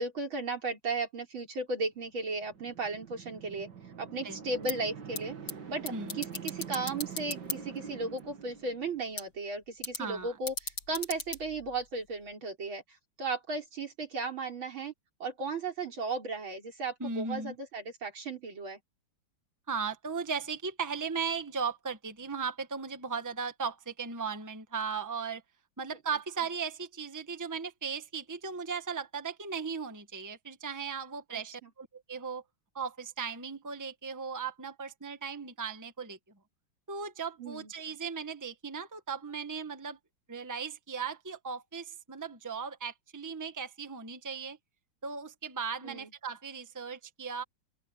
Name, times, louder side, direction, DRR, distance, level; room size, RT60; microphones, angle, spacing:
voice 1, 0.0-3.7 4.0-5.4 5.7-12.8 13.2-14.9 15.2-18.8 31.3-31.7 37.4-37.7 45.8-46.1, right 3 dB, 85° right, 5.3 m, -35 dB
sound 1, 2.1-9.1, right 6 dB, 60° right, 2.5 m, -45 dB
sound 2, 4.5-12.3, left 4 dB, 75° left, 4.6 m, -42 dB
voice 2, 5.9-6.2 10.0-10.4 17.0-17.6 19.7-25.4 25.8-32.4 32.7-36.2 36.9-40.0 40.3-44.6 45.0-47.4, right 5 dB, 10° right, 1.3 m, -37 dB
open air
omnidirectional pair, 2.1 m